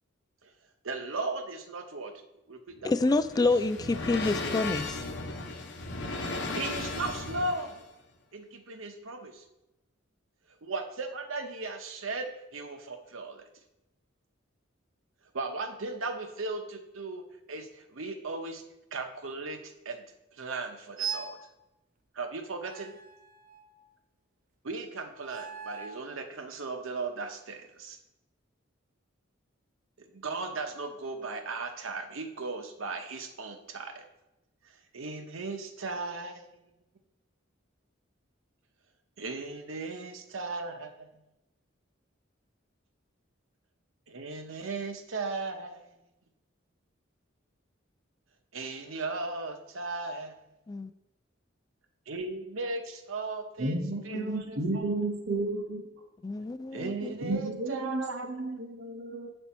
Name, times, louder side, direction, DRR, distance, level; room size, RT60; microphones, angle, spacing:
voice 1, 0.8-2.1 2.5-3.2 6.5-7.8 8.3-9.4 10.6-13.4 15.3-18.6 18.9-20.0 20.3-21.4 22.1-23.0 24.6-28.0 30.0-34.0 34.6-36.5 39.2-41.1 44.1-45.9 48.5-50.4 52.1-53.8 54.0-55.0 56.7-58.7, right 3 dB, 85° right, 6 dB, 0.9 m, -37 dB
sound 1, 2.7-7.8, left 3 dB, 60° left, 0.8 m, -36 dB
voice 2, 2.8-5.0 50.7-50.9 54.1-54.4 56.2-57.1, left 3 dB, 20° left, 10 dB, 0.3 m, -28 dB
sound 2, 21.0-21.5 22.6-23.9 25.2-26.1, right 7 dB, 45° right, 0.5 m, -39 dB
voice 3, 53.6-55.8 57.2-59.3, right 2 dB, 60° right, 3 dB, 1.0 m, -32 dB
7.0 x 5.5 x 4.3 m, 0.94 s
head